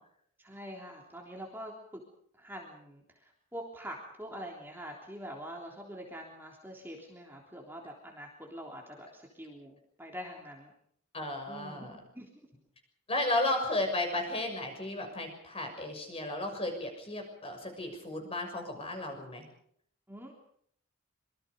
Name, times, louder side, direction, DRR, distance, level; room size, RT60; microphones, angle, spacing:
voice 1, 0.4-2.0 2.4-10.7 11.5-11.9 12.1-12.3 20.1-20.4, equal, 10° right, 0 dB, 3.4 m, -45 dB
voice 2, 11.1-12.0 13.1-19.4, left 2 dB, 25° left, 4 dB, 6.6 m, -34 dB
26.0 x 24.0 x 5.3 m, 0.66 s
head